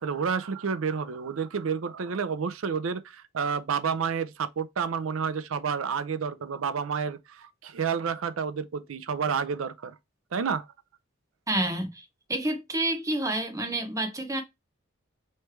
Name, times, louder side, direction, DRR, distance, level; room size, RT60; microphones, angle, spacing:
voice 1, 0.0-9.9 10.3-10.7, right 6 dB, 80° right, 0.5 m, -30 dB
voice 2, 11.5-12.0 12.3-14.4, right 1 dB, 15° right, 0.9 m, -29 dB
3.2 x 3.2 x 4.5 m
head